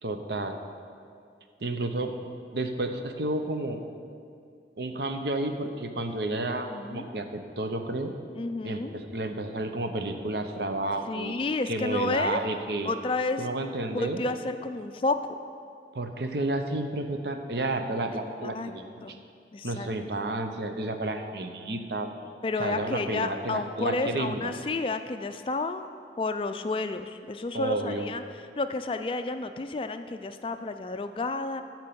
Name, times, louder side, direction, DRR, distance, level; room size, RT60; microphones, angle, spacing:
voice 1, 0.0-0.6 1.6-2.1 2.5-3.8 4.8-8.1 8.6-11.4 11.7-12.9 13.4-14.2 15.9-19.2 19.6-22.1 22.6-24.5 27.5-28.1, right 2 dB, 70° right, 6 dB, 0.8 m, -31 dB
voice 2, 6.7-7.1 8.4-8.9 11.1-12.4 12.8-13.4 13.9-15.4 18.4-18.7 19.0-19.2 19.5-19.9 22.4-25.9 26.2-28.2 28.6-31.6, left 3 dB, 30° left, 9 dB, 0.3 m, -31 dB
13.5 x 4.5 x 6.9 m, 2.3 s
head